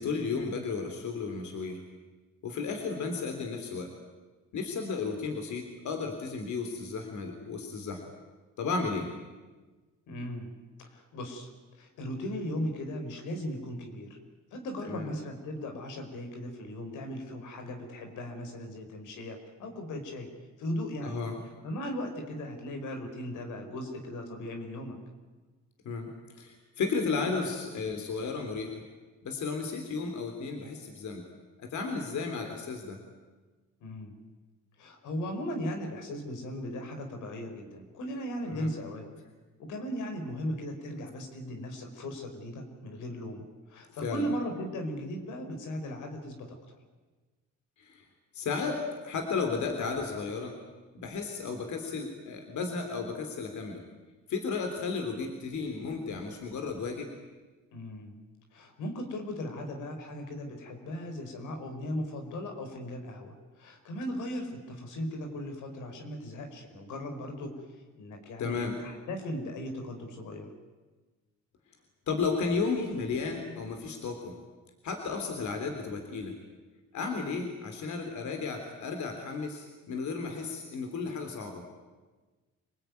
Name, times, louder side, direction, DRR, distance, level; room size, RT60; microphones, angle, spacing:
voice 1, 0.0-1.8 2.4-3.9 4.5-8.1 8.6-9.1 14.8-15.1 21.0-21.4 25.9-26.1 26.4-28.8 29.2-31.2 31.6-33.0 38.5-38.7 44.0-44.2 47.8-48.0 48.3-50.5 50.9-53.8 54.3-57.1 68.4-68.8 72.1-74.3 74.8-76.3 76.9-81.6, left 4 dB, 70° left, 4 dB, 3.6 m, -33 dB
voice 2, 10.1-10.5 10.9-11.5 11.7-14.2 14.5-20.3 20.6-21.2 21.6-25.0 33.8-34.1 34.8-39.0 39.6-46.8 57.7-58.1 58.5-70.5, equal, 90° left, 4 dB, 4.9 m, -37 dB
26.5 x 20.0 x 9.5 m, 1.3 s
cardioid pair, 90°, 30 cm